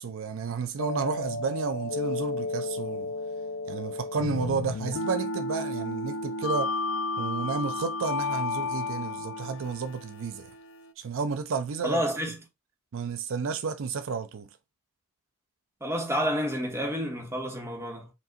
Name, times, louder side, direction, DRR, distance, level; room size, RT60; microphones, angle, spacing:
voice 1, 0.0-3.1 3.7-6.7 7.2-10.5 11.0-12.0 12.9-14.5, right 5 dB, 65° right, 0.4 m, -32 dB
sound 1, 0.8-10.9, left 3 dB, 65° left, 0.5 m, -32 dB
voice 2, 11.8-12.4 15.8-18.1, equal, 15° right, 1.3 m, -29 dB
5.2 x 2.6 x 3.6 m
head